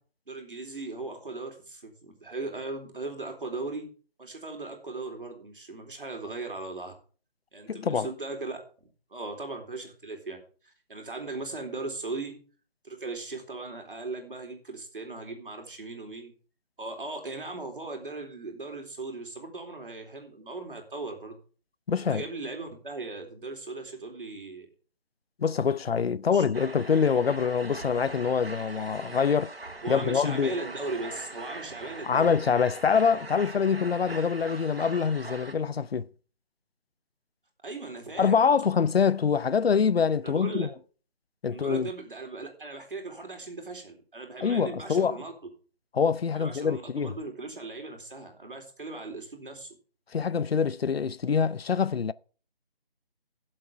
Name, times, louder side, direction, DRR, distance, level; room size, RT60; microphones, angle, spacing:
voice 1, 0.3-3.9 4.2-6.9 7.5-8.6 9.1-10.4 10.6-12.4 12.8-16.3 16.8-21.4 22.1-24.7 26.3-26.4 29.8-32.3 37.6-38.4 40.2-40.7 41.5-45.3 46.3-49.7, right 3 dB, 60° right, 4.0 m, -38 dB
voice 2, 7.7-8.1 21.9-22.2 25.4-29.5 29.9-30.6 32.0-36.1 38.2-40.7 41.4-41.9 44.4-45.2 45.9-47.1 50.1-52.1, left 6 dB, 80° left, 0.7 m, -25 dB
sound 1, 26.5-35.5, right 3 dB, 80° right, 3.2 m, -41 dB
18.0 x 7.7 x 3.5 m
figure-of-eight pair, 180°, 30 cm